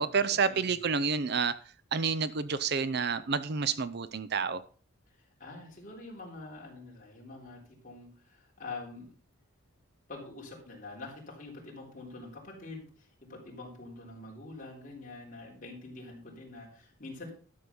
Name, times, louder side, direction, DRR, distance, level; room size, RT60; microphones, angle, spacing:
voice 1, 0.0-1.5 1.9-4.6, right 5 dB, 50° right, 14 dB, 0.5 m, -29 dB
voice 2, 5.4-9.1 10.1-17.3, left 3 dB, 40° left, -2 dB, 3.7 m, -45 dB
12.5 x 6.6 x 5.3 m, 0.42 s
head